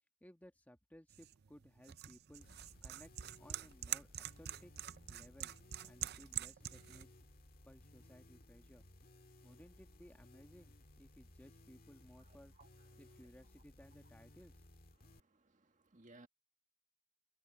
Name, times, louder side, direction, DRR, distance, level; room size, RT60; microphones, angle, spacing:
voice 1, 0.2-2.5 2.8-4.7 5.1-5.5 5.8-7.1 7.6-8.8 9.4-12.5 13.0-14.5, equal, 10° left, 1.4 m, -60 dB
sound 1, 1.1-7.0, right 12 dB, 55° right, 0.6 m, -46 dB
sound 2, 2.4-15.2, left 1 dB, 50° left, 1.9 m, -61 dB
voice 2, 12.2-13.0 15.0-16.3, right 2 dB, 40° right, 1.7 m, -64 dB
head